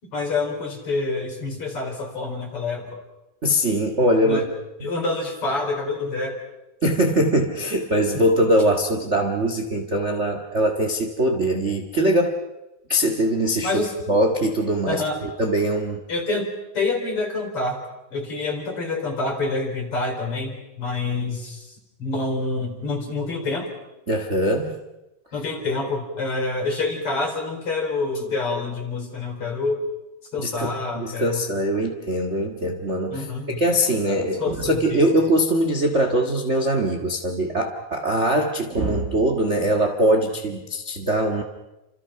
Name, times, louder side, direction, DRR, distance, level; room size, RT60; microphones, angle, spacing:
voice 1, 0.0-3.0 4.2-4.5 4.8-6.4 8.1-8.2 13.6-13.9 14.9-15.2 16.1-17.8 18.1-23.7 25.3-29.8 30.3-31.5 33.1-33.6 34.1-35.1, left 3 dB, 45° left, 2 dB, 5.3 m, -27 dB
voice 2, 3.4-4.4 6.8-12.4 12.9-13.7 14.1-15.0 15.4-16.0 24.1-24.8 30.4-41.4, right 1 dB, 30° right, 4 dB, 1.5 m, -22 dB
29.5 x 27.0 x 5.8 m, 0.96 s
omnidirectional pair, 3.5 m